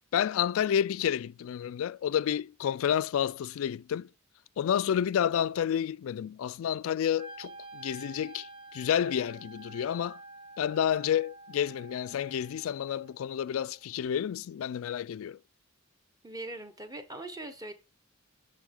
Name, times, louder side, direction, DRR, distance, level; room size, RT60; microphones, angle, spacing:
voice 1, 0.1-4.1 4.6-10.2 10.6-15.4, left 9 dB, 70° left, 0.3 m, -30 dB
Wind instrument woodwind instrument, 7.2-13.2, right 2 dB, 45° right, 2.5 m, -49 dB
voice 2, 16.2-17.7, right 2 dB, 15° right, 1.0 m, -41 dB
11.0 x 3.7 x 3.7 m
head